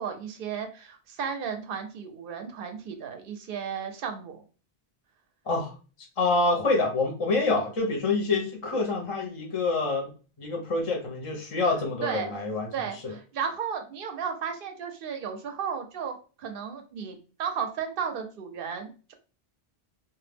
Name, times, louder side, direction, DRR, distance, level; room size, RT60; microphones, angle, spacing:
voice 1, 0.0-4.4 12.0-12.3 12.7-19.1, right 7 dB, 65° right, 5 dB, 0.7 m, -34 dB
voice 2, 6.2-10.1 10.4-13.1, left 3 dB, 40° left, 1 dB, 0.5 m, -27 dB
2.2 x 2.0 x 3.3 m, 0.36 s
omnidirectional pair, 1.1 m